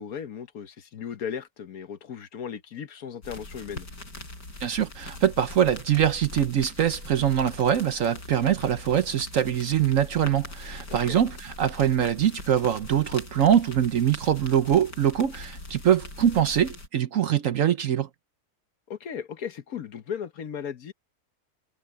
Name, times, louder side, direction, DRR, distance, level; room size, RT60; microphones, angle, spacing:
voice 1, 0.0-3.9 10.9-11.2 18.9-20.9, left 7 dB, 60° left, 1.4 m, -36 dB
sound 1, 3.2-16.9, left 2 dB, 85° left, 7.8 m, -42 dB
voice 2, 4.6-18.1, right 9 dB, 60° right, 1.0 m, -23 dB
omnidirectional pair, 1.8 m